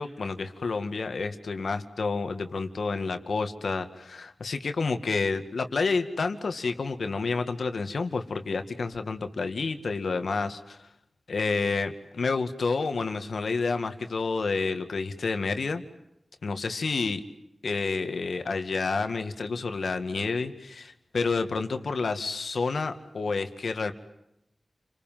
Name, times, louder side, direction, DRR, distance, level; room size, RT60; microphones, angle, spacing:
voice 1, 0.0-10.9 11.3-15.8 16.4-17.2 17.6-23.9, left 4 dB, 85° left, 8 dB, 2.2 m, -29 dB
30.0 x 26.0 x 7.7 m, 0.82 s
wide cardioid pair, 85°, 0 cm